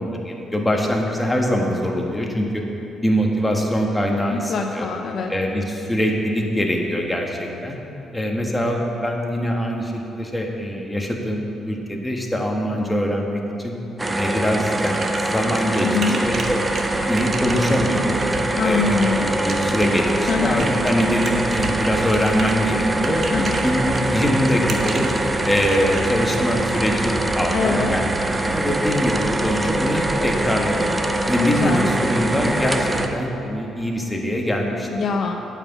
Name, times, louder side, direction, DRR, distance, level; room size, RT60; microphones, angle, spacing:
voice 1, 0.0-2.6 3.0-4.9 5.3-7.8 8.1-13.7 14.1-16.6 17.1-18.2 18.6-25.0 25.4-30.9 31.3-34.9, equal, 10° left, 0 dB, 1.4 m, -23 dB
voice 2, 4.3-5.3 15.8-16.2 18.6-19.3 20.3-20.7 23.3-23.5 27.5-28.0 31.4-31.9 34.8-35.4, left 4 dB, 55° left, 3 dB, 0.7 m, -23 dB
sound 1, 14.0-33.1, right 1 dB, 15° right, 0.7 m, -24 dB
sound 2, 14.5-26.0, right 3 dB, 45° right, 1.1 m, -33 dB
sound 3, 16.2-33.2, right 6 dB, 65° right, 0.5 m, -33 dB
8.8 x 5.9 x 8.0 m, 2.9 s
cardioid pair, 90°, 0 cm